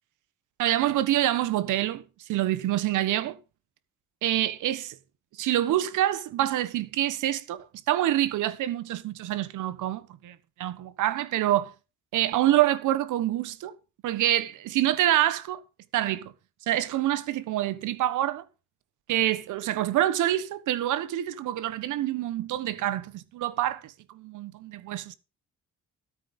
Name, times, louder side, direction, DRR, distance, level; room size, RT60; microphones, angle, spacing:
voice 1, 0.6-2.0 2.3-3.4 4.2-4.9 5.4-7.6 7.9-11.7 12.1-13.7 14.0-15.6 15.9-16.3 16.7-18.4 19.1-25.2, right 13 dB, 85° right, 1.3 m, -26 dB
13.0 x 8.8 x 5.4 m
cardioid pair, 90°, 30 cm